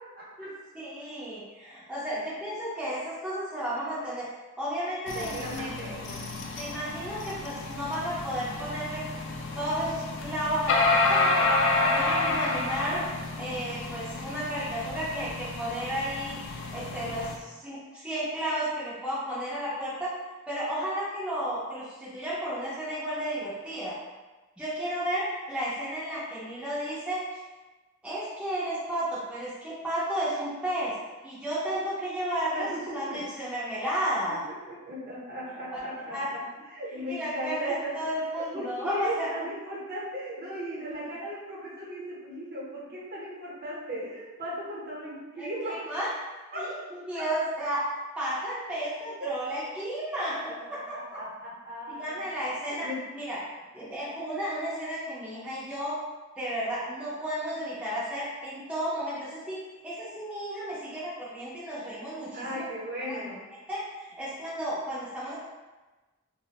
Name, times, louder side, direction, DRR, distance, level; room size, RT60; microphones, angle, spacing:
voice 1, 0.7-4.3 4.6-5.7 6.6-9.0 9.6-11.5 11.9-13.0 13.4-20.1 20.5-23.9 24.6-27.2 28.0-30.9 31.2-34.4 35.7-35.8 36.1-36.3 37.1-39.3 45.4-46.1 46.5-47.9 48.2-50.4 50.7-51.2 51.9-52.9 53.1-53.4 53.7-56.0 56.4-59.6 59.8-62.6 63.1-63.2 63.7-65.3, equal, 5° right, -10 dB, 0.5 m, -33 dB
sound 1, 5.1-17.4, left 2 dB, 60° left, 0.3 m, -30 dB
voice 2, 5.1-6.3 32.5-33.2 34.3-36.2 36.7-37.9 38.5-45.9 46.5-46.6 47.1-47.2 49.2-49.3 50.2-52.2 52.8-53.0 62.3-63.4, right 1 dB, 50° right, -6 dB, 0.8 m, -37 dB
2.4 x 2.0 x 2.8 m, 1.2 s
head